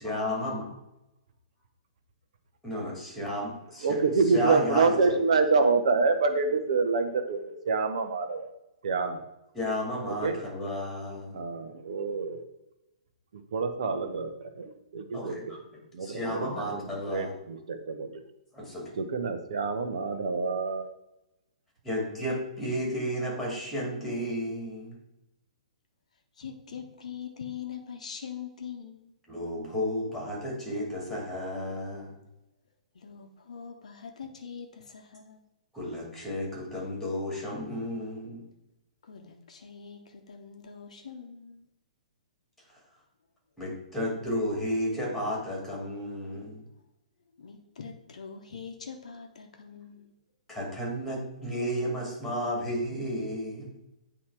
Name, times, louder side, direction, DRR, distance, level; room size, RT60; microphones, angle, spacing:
voice 1, 0.0-0.6 2.6-4.0 4.3-5.2 9.5-11.4 15.1-17.3 18.5-19.0 21.8-25.0 29.3-32.2 35.7-38.5 43.6-46.7 50.5-53.8, equal, ahead, -3 dB, 2.1 m, -33 dB
voice 2, 3.8-8.5 8.8-9.2 10.1-10.4 11.3-12.4 13.5-14.3 14.6-15.6 15.9-18.2 19.0-20.9, right 4 dB, 55° right, 6 dB, 0.9 m, -27 dB
voice 3, 26.4-29.1 32.9-35.4 39.0-41.7 47.3-50.1, left 7 dB, 60° left, 4 dB, 0.8 m, -43 dB
8.5 x 3.0 x 4.6 m, 0.90 s
figure-of-eight pair, 115°, 4 cm